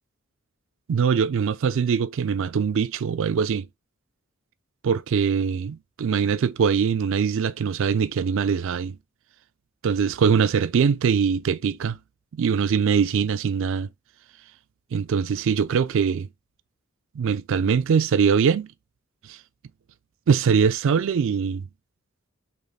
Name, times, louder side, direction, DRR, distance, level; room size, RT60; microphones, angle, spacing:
voice 1, 0.9-3.7 4.8-9.0 9.8-12.0 12.3-13.9 14.9-16.3 17.1-18.7 19.2-19.4 20.3-21.7, right 6 dB, 65° right, 0.4 m, -22 dB
4.0 x 2.9 x 3.3 m
head